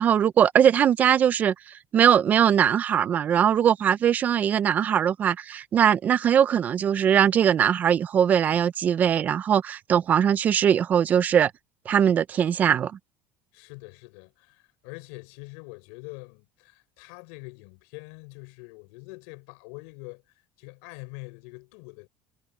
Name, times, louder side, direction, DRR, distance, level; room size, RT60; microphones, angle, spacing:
voice 1, 0.0-11.5 11.9-12.9, right 9 dB, 30° right, 0.5 m, -21 dB
voice 2, 13.5-20.2 20.6-22.1, left 28 dB, 90° left, 4.0 m, -44 dB
cardioid pair, 165°, 6 cm